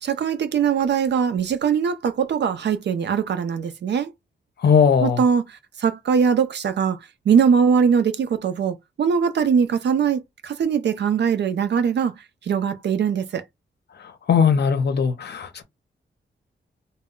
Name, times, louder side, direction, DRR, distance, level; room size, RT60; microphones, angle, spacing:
voice 1, 0.0-4.1 5.0-7.0 7.3-12.1 12.4-13.4, right 7 dB, 65° right, 0.4 m, -21 dB
voice 2, 4.6-5.2 14.3-15.6, left 6 dB, 60° left, 0.6 m, -18 dB
2.1 x 2.1 x 3.6 m
wide cardioid pair, 135°, 20 cm